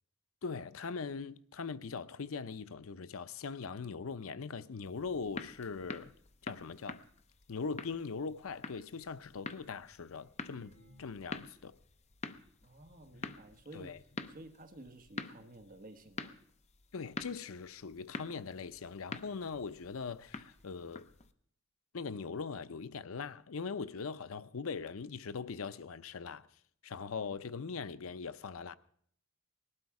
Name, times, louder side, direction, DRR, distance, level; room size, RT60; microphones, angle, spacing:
voice 1, 0.4-6.1 6.4-7.0 7.5-11.7 13.7-14.0 16.9-21.1 21.9-26.5 26.8-28.8, left 5 dB, 80° left, 0.6 m, -41 dB
sound 1, 4.8-21.3, left 3 dB, 30° left, 0.7 m, -47 dB
sound 2, 9.8-11.5 11.8-11.9 12.4-12.5 12.8-13.5 14.3-14.4 14.6-14.7 15.0-15.3 16.1-16.2 16.5-16.6 17.2-17.3 17.6-17.7, equal, 15° left, 6.8 m, -65 dB
voice 2, 12.6-16.3, right 1 dB, 40° right, 1.2 m, -53 dB
19.0 x 12.0 x 4.8 m
head